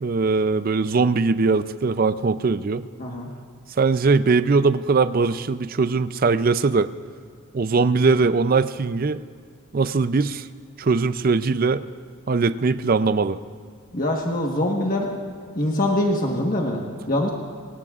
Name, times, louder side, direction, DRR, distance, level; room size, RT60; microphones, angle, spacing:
voice 1, 0.0-2.8 3.8-6.9 7.5-9.2 9.7-10.5 10.8-11.8 12.3-13.4, right 4 dB, 40° right, 13 dB, 0.4 m, -20 dB
voice 2, 13.9-15.2 15.6-17.3, left 1 dB, 40° left, 0 dB, 1.3 m, -24 dB
26.5 x 17.5 x 2.5 m, 2.2 s
head